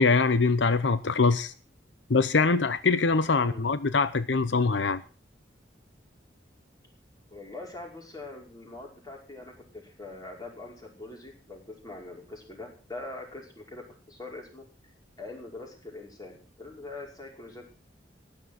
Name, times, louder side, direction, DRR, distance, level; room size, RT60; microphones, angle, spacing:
voice 1, 0.0-1.5 2.1-5.0, left 4 dB, 90° left, 14 dB, 0.8 m, -23 dB
voice 2, 3.3-3.7 7.3-14.6 15.2-17.7, left 2 dB, 20° left, 0 dB, 5.3 m, -43 dB
15.5 x 11.0 x 6.4 m, 0.38 s
head